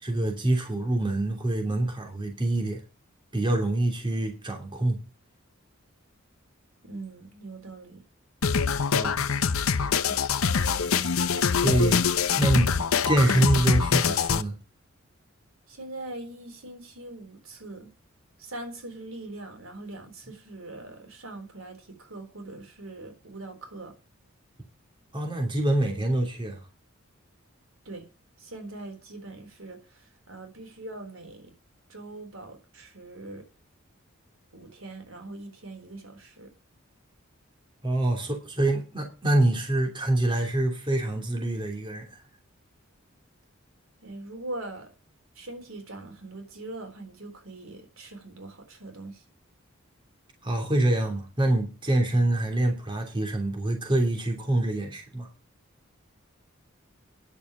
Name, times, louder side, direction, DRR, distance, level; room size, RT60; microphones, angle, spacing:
voice 1, 0.0-2.8 3.3-5.0 8.9-9.2 11.6-12.0 12.3-12.7 13.0-14.6 25.1-26.6 37.8-42.2 50.4-55.3, right 1 dB, 25° right, 3.0 m, -25 dB
voice 2, 6.8-8.0 10.0-10.3 15.7-17.9 18.4-23.9 27.9-28.1 28.4-31.5 31.9-33.4 34.5-36.5 44.0-44.9 45.4-49.2, right 2 dB, 75° right, 4.0 m, -42 dB
sound 1, 8.4-14.4, left 6 dB, 85° left, 0.8 m, -24 dB
10.5 x 6.9 x 7.3 m
head